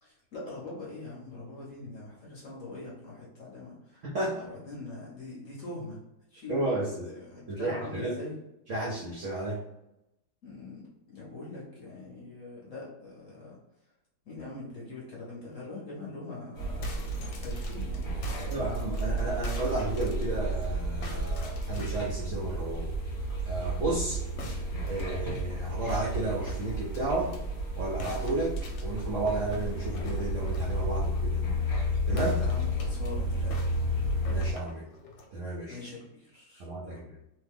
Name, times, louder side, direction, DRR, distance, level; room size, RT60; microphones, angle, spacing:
voice 1, 0.0-4.0 4.4-6.0 6.3-8.3 10.4-10.8 11.1-13.5 14.3-18.7 32.3-33.5 35.7-37.0, left 3 dB, 55° left, -5 dB, 1.0 m, -43 dB
voice 2, 4.0-4.5 6.5-7.1 7.5-8.2 8.7-9.6 18.5-22.9 23.5-24.2 24.9-27.4 27.8-31.4 32.1-32.4 34.3-34.9 35.3-35.8 36.6-37.1, right 2 dB, 65° right, -4 dB, 0.7 m, -32 dB
sound 1, 16.6-34.5, equal, 20° left, 0.8 m, -32 dB
sound 2, 16.8-20.7 21.0-22.2 24.4-27.4 28.0-30.8 32.1-33.1 33.5-35.3, left 1 dB, 75° left, 1.3 m, -44 dB
3.1 x 2.1 x 3.4 m, 0.89 s
omnidirectional pair, 2.1 m